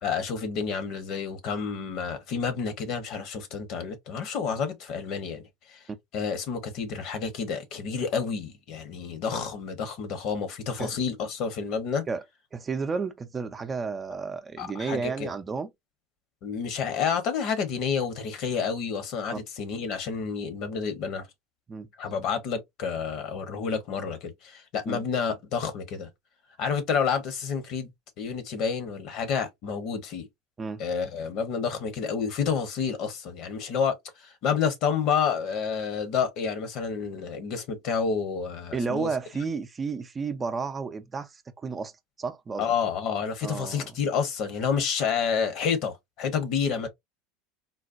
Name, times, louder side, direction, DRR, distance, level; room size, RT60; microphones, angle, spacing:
voice 1, 0.0-5.4 5.7-5.8 6.1-12.0 14.6-15.3 16.4-21.3 22.0-26.1 26.6-27.9 28.2-30.3 30.8-39.1 42.6-46.9, left 6 dB, 60° left, 1.0 m, -29 dB
voice 2, 12.5-15.7 19.3-19.4 21.7-21.9 24.9-25.0 30.6-30.8 38.7-41.9 42.2-42.7 43.4-43.9, right 4 dB, 25° right, 0.6 m, -32 dB
4.0 x 2.2 x 2.5 m
hypercardioid pair, 85°, 0 cm